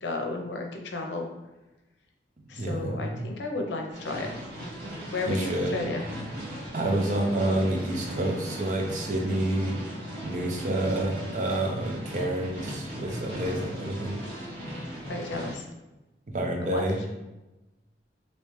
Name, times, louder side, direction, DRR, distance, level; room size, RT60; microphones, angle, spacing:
voice 1, 0.0-1.3 2.5-4.3 5.1-6.3 15.1-15.6 16.6-17.1, left 3 dB, 85° left, 2 dB, 0.6 m, -33 dB
voice 2, 2.6-3.3 5.3-5.7 6.7-9.8 10.2-14.2 16.3-17.0, right 1 dB, 45° right, 1 dB, 0.5 m, -28 dB
sound 1, 3.9-15.5, equal, 90° right, 1.5 m, -38 dB
3.2 x 2.9 x 3.1 m, 1.0 s
head